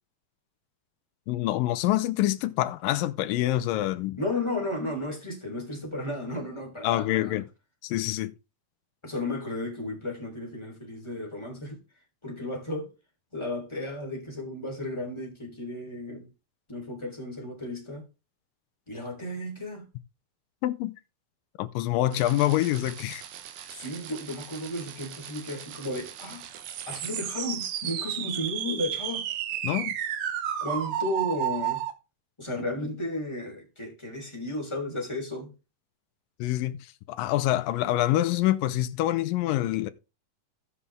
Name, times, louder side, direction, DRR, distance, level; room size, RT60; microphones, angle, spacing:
voice 1, 1.3-4.2 6.8-7.4 7.8-8.3 20.6-20.9 21.6-23.2 29.6-29.9 36.4-39.9, left 15 dB, 85° left, 2.4 m, -26 dB
voice 2, 4.2-7.4 9.0-11.8 12.2-12.9 13.3-16.3 16.7-18.0 18.9-19.9 23.7-26.4 26.9-29.3 30.6-31.8 32.4-35.5, left 1 dB, 10° left, 3.1 m, -34 dB
sound 1, 22.1-31.9, right 10 dB, 90° right, 2.9 m, -34 dB
16.5 x 5.7 x 3.5 m
omnidirectional pair, 3.9 m